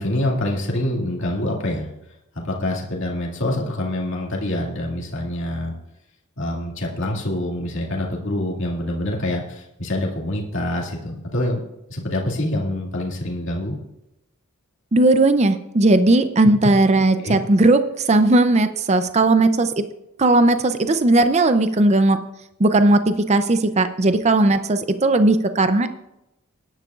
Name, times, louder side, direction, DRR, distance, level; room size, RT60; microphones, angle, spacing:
voice 1, 0.0-1.9 2.3-5.7 6.4-11.6 11.9-13.8 16.4-16.5 17.2-17.3, left 1 dB, 55° left, -3 dB, 2.3 m, -26 dB
voice 2, 14.9-19.8 20.2-22.2 22.6-25.9, right 2 dB, 30° right, 10 dB, 0.5 m, -17 dB
20.0 x 10.5 x 2.4 m, 0.89 s
head